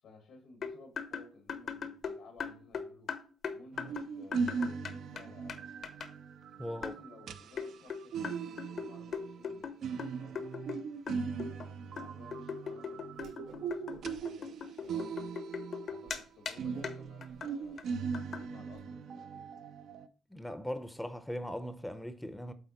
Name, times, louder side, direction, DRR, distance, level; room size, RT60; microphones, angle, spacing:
voice 1, 0.0-3.2 3.5-5.7 6.6-9.7 10.0-10.5 11.1-15.4 15.9-17.9 18.1-19.6, left 3 dB, 80° left, 1.9 m, -57 dB
sound 1, 0.6-5.2 5.5-5.6 5.8-6.1 6.8-7.0 7.6-10.8 11.1-11.6 12.0-16.2 16.4-16.5 16.8-17.0 17.2-17.5 17.8-17.9 18.1-18.4, left 6 dB, 55° left, 1.0 m, -40 dB
sound 2, 3.7-16.2 16.5-20.1, right 5 dB, 70° right, 0.5 m, -39 dB
voice 2, 6.6-6.9 20.3-22.5, equal, 5° left, 0.6 m, -39 dB
Whoosh swoosh swish, 13.1-13.6 13.9-14.4 14.8-15.3 15.7-15.8 16.0-16.2 16.6-18.8, right 4 dB, 90° right, 2.2 m, -57 dB
7.9 x 4.1 x 4.2 m
cardioid pair, 90°, 0 cm